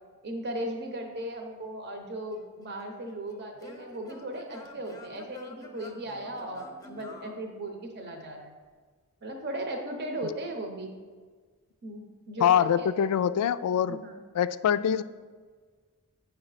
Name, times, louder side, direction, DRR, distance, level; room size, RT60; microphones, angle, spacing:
voice 1, 0.2-8.5 9.2-10.9 11.8-13.1 13.9-14.1, right 1 dB, 50° right, 3 dB, 0.9 m, -37 dB
Singing / Plucked string instrument, 2.3-8.2, left 2 dB, 15° left, 0.7 m, -49 dB
voice 2, 12.4-14.0 14.3-15.0, left 9 dB, 80° left, 15 dB, 0.3 m, -24 dB
8.9 x 5.7 x 4.1 m, 1.5 s
head